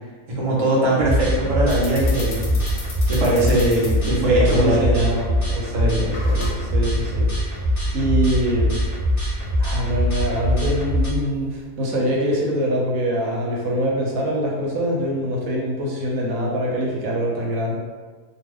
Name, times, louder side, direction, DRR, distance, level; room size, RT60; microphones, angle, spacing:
voice 1, 0.3-2.4 3.1-5.1 5.7-5.9, right 1 dB, 55° right, -5 dB, 0.4 m, -20 dB
sound 1, 1.0-11.1, equal, 25° left, 0.4 m, -23 dB
sound 2, 1.6-11.7, left 2 dB, 60° left, 0.7 m, -40 dB
voice 2, 4.2-7.6 7.9-8.7 9.6-17.8, equal, 70° right, -2 dB, 1.0 m, -24 dB
2.4 x 2.2 x 3.4 m, 1.4 s
omnidirectional pair, 1.6 m